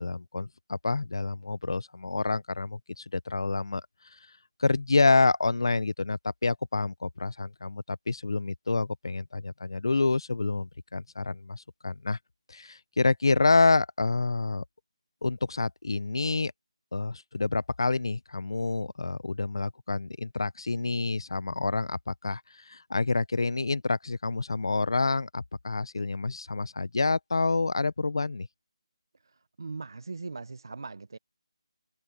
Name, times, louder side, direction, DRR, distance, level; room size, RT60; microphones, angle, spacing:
voice 1, 0.0-3.8 4.6-12.2 12.5-14.6 15.2-16.5 16.9-22.4 22.7-28.5, left 3 dB, 45° left, 0.5 m, -28 dB
voice 2, 29.6-31.2, right 4 dB, 40° right, 0.5 m, -39 dB
figure-of-eight pair, 180°, 3 cm